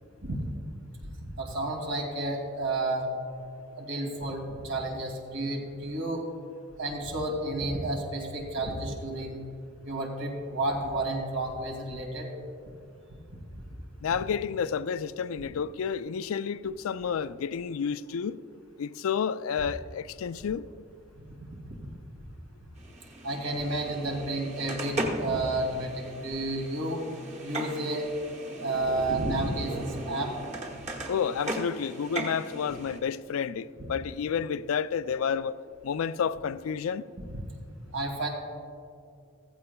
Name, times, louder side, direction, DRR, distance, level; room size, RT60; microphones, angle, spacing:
voice 1, 0.2-0.5 1.0-3.1 3.8-6.2 6.8-9.4 9.8-12.3 13.3-13.6 21.5-21.8 23.2-27.0 27.4-28.1 28.6-30.3 37.3-37.4 37.9-38.3, right 2 dB, 85° right, 2.5 m, -31 dB
voice 2, 14.0-18.4 18.8-20.6 31.1-35.6 35.8-37.1, left 7 dB, 75° left, 0.4 m, -30 dB
sound 1, 22.8-33.0, right 1 dB, 35° right, 1.2 m, -38 dB
15.0 x 15.0 x 2.2 m
head